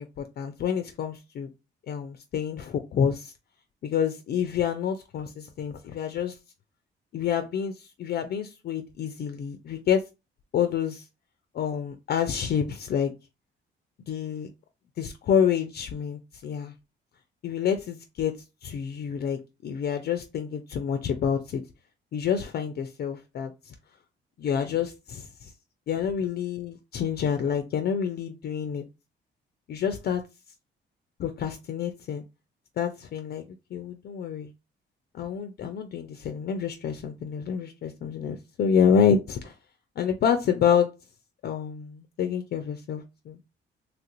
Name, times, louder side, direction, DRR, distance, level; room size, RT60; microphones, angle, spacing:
voice 1, 0.0-1.5 1.9-3.3 3.8-6.3 7.1-10.0 10.5-11.0 11.5-13.1 14.1-14.5 15.0-16.7 17.4-18.3 18.6-21.6 22.1-23.5 24.4-25.5 25.9-28.8 29.7-30.2 31.2-32.2 32.8-33.4 33.7-34.5 35.1-39.5 40.0-40.9 41.4-43.5, left 7 dB, 55° left, 0.4 m, -28 dB
3.0 x 2.5 x 2.9 m
cardioid pair, 90°, 20 cm